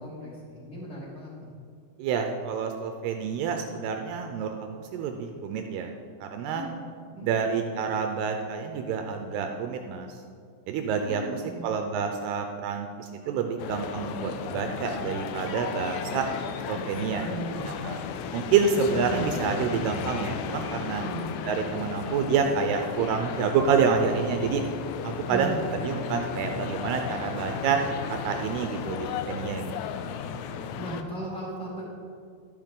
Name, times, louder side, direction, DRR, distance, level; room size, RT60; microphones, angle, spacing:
voice 1, 0.0-1.5 6.5-6.7 7.1-7.5 11.0-11.7 16.9-17.7 21.0-21.2 25.3-25.6 30.8-32.0, right 1 dB, 20° left, -6 dB, 2.4 m, -37 dB
voice 2, 2.0-4.5 4.9-5.9 6.2-6.6 7.2-10.1 10.7-11.2 11.6-16.3 16.7-17.2 17.8-18.0 18.3-21.0 21.5-24.6 25.0-25.5 25.8-27.8 28.1-29.7, right 6 dB, 85° right, 4 dB, 2.4 m, -28 dB
sound 1, 13.6-31.0, left 7 dB, 80° left, 2.8 m, -34 dB
12.0 x 10.5 x 3.7 m, 2.2 s
omnidirectional pair, 5.2 m